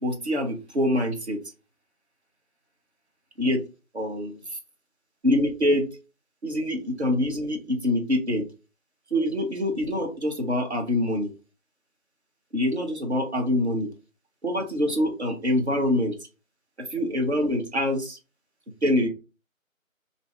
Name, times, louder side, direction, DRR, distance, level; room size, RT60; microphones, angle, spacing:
voice 1, 0.0-1.4 3.4-3.6 3.9-4.4 5.2-5.9 6.4-8.5 9.1-11.3 12.5-13.9 14.4-16.1 16.9-18.2 18.8-19.1, left 1 dB, 50° right, 3 dB, 0.9 m, -25 dB
2.6 x 2.6 x 3.3 m, 0.31 s
figure-of-eight pair, 170°, 41 cm